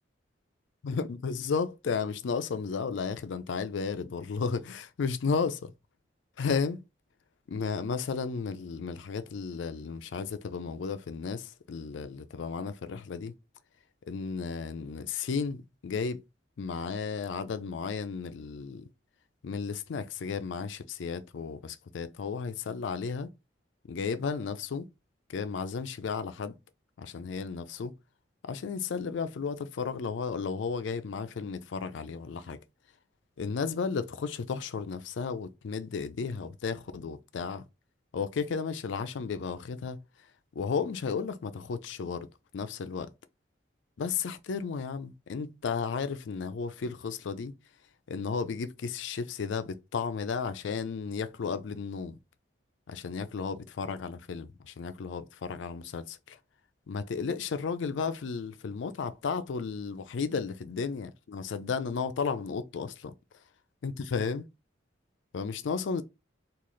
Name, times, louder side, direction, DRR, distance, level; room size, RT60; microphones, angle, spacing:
voice 1, 0.8-5.7 6.4-6.8 7.5-13.3 14.1-16.2 16.6-18.9 19.4-23.3 23.9-24.9 25.3-26.6 27.0-27.9 28.4-32.6 33.4-37.6 38.1-40.0 40.6-42.3 42.5-43.1 44.0-47.5 48.1-52.2 52.9-56.4 56.9-63.1 63.8-64.5 65.3-66.0, left 5 dB, 75° left, 0.4 m, -33 dB
3.1 x 2.4 x 3.8 m
head